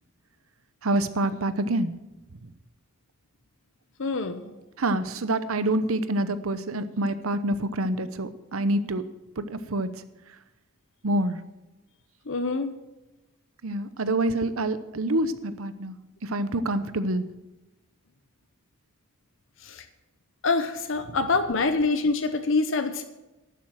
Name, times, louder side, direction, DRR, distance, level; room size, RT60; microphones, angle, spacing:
voice 1, 0.8-1.9 2.4-2.5 4.8-9.1 9.4-9.9 11.0-11.4 13.6-16.0 16.2-17.3 21.1-21.2, right 1 dB, 85° right, 12 dB, 0.8 m, -27 dB
voice 2, 4.0-4.5 12.3-12.7 19.6-19.8 20.4-23.0, left 3 dB, 65° left, 9 dB, 0.8 m, -25 dB
11.5 x 7.3 x 7.7 m, 1.0 s
head